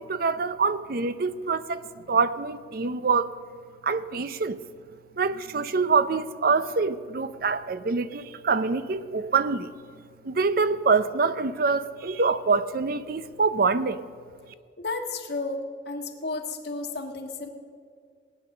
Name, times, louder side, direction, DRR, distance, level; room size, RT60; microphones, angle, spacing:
voice 1, 0.0-1.8 2.1-3.3 3.8-4.6 5.2-9.7 10.2-14.0, right 4 dB, 55° right, 0.5 m, -25 dB
voice 2, 14.8-15.6 15.8-17.5, left 3 dB, 65° left, 1.6 m, -32 dB
18.5 x 9.6 x 6.6 m
head